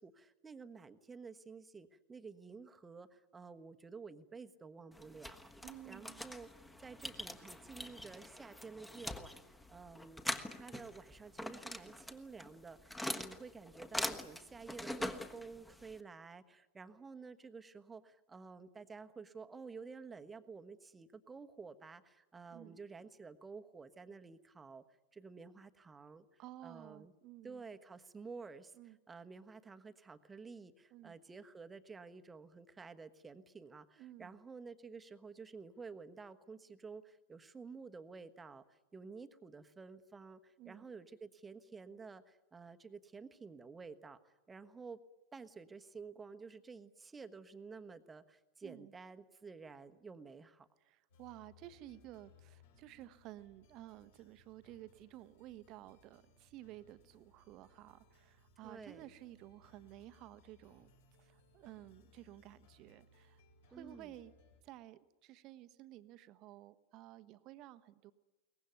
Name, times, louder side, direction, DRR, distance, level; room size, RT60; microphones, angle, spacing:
voice 1, 0.0-6.5 6.8-10.3 10.5-24.8 25.1-27.1 27.4-45.0 45.3-50.7 58.6-59.1 63.7-64.1, right 4 dB, 15° right, 10 dB, 1.2 m, -52 dB
sound 1, 4.9-16.0, left 1 dB, 5° left, 1.4 m, -44 dB
voice 2, 5.6-6.3 22.5-22.8 26.4-27.6 28.8-29.0 30.9-31.1 34.0-34.3 40.6-40.9 48.6-48.9 50.8-60.9 61.2-63.4 63.7-64.3 64.6-68.1, right 14 dB, 40° right, 13 dB, 1.1 m, -54 dB
sound 2, 51.1-64.6, left 3 dB, 60° left, 5.4 m, -66 dB
23.0 x 19.5 x 9.4 m, 1.1 s
figure-of-eight pair, 90°, 0 cm